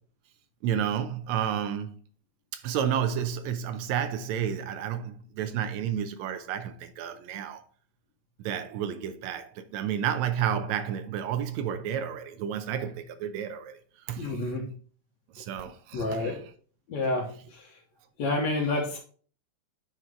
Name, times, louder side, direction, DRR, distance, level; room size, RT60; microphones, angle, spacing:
voice 1, 0.6-2.0 2.5-7.6 8.4-13.8 14.1-14.4 15.4-16.4, right 9 dB, 80° right, 1.8 m, -31 dB
voice 2, 14.2-14.7 15.9-16.4 16.9-17.8 18.2-19.0, left 2 dB, 70° left, 2.4 m, -29 dB
9.3 x 4.5 x 3.7 m
omnidirectional pair, 3.4 m